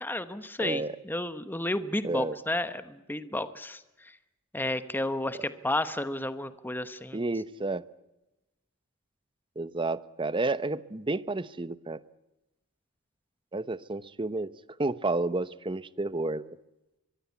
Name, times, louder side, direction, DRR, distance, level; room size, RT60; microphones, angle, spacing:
voice 1, 0.0-4.2 4.5-7.2, left 1 dB, 10° left, 11 dB, 1.1 m, -32 dB
voice 2, 0.6-1.0 2.0-2.4 7.1-7.9 9.6-12.0 13.5-14.5 14.8-16.6, right 2 dB, 25° right, 15 dB, 0.9 m, -31 dB
23.5 x 23.5 x 8.3 m, 0.97 s
head